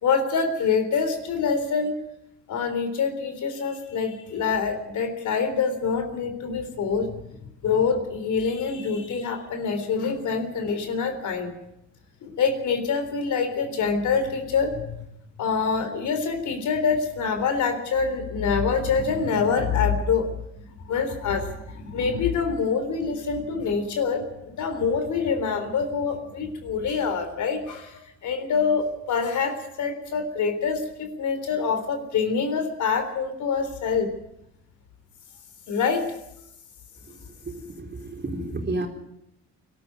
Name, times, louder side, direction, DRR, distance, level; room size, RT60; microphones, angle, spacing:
voice 1, 0.0-2.0 2.5-11.5 12.2-15.1 15.4-20.3 20.8-34.1 35.7-36.1, left 5 dB, 75° left, 7 dB, 3.8 m, -25 dB
voice 2, 37.1-38.9, right 2 dB, 35° right, 2 dB, 4.1 m, -32 dB
21.5 x 13.0 x 9.5 m, 0.82 s
cardioid pair, 90°, 30 cm